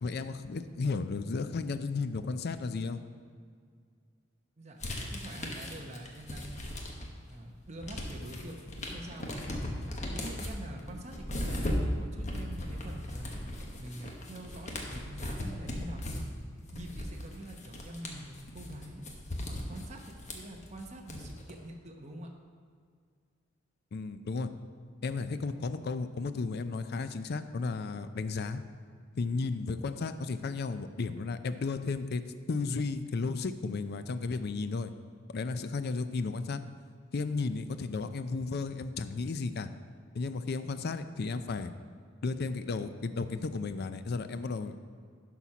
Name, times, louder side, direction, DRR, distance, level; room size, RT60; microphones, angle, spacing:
voice 1, 0.0-3.0 23.9-24.5 25.0-28.6 29.1-32.2 32.5-34.9 35.3-36.6 37.1-39.7 40.1-41.7 42.2-44.8, left 4 dB, 55° left, 11 dB, 0.5 m, -34 dB
voice 2, 4.6-6.7 7.3-8.6 8.9-9.4 10.1-13.4 13.8-16.3 16.7-19.0 19.4-22.3, right 1 dB, 35° right, 1 dB, 0.9 m, -45 dB
sound 1, 4.8-7.2 7.6-21.5, left 1 dB, 35° left, 1.1 m, -38 dB
11.0 x 4.4 x 5.9 m, 2.1 s
head